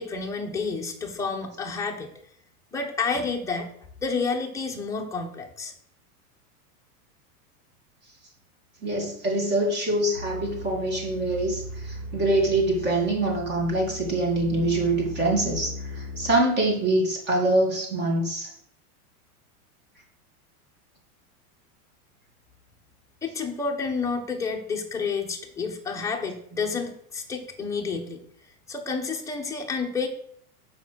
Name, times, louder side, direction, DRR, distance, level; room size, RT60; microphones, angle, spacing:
voice 1, 0.0-2.1 2.7-3.7 4.0-5.7 23.2-28.2 28.7-30.1, left 4 dB, 5° left, 1 dB, 1.0 m, -30 dB
voice 2, 8.8-18.5, right 1 dB, 25° right, 0 dB, 2.4 m, -24 dB
sound 1, 10.1-16.3, equal, 50° right, 2.2 m, -37 dB
7.1 x 5.5 x 6.3 m, 0.66 s
supercardioid pair, 155°, 45 cm